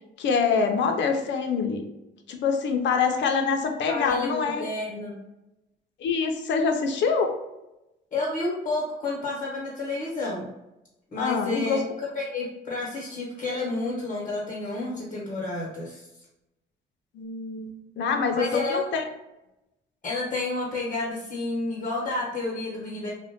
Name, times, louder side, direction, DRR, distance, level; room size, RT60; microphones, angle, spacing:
voice 1, 0.2-1.8 2.3-4.6 6.0-7.3 11.2-11.8 17.1-19.0, left 5 dB, 65° left, 4 dB, 0.5 m, -25 dB
voice 2, 3.9-5.2 8.1-10.5 11.1-16.1 18.3-18.9 20.0-23.1, left 2 dB, 40° left, -5 dB, 0.9 m, -30 dB
2.5 x 2.1 x 2.7 m, 0.94 s
cardioid pair, 90°, 20 cm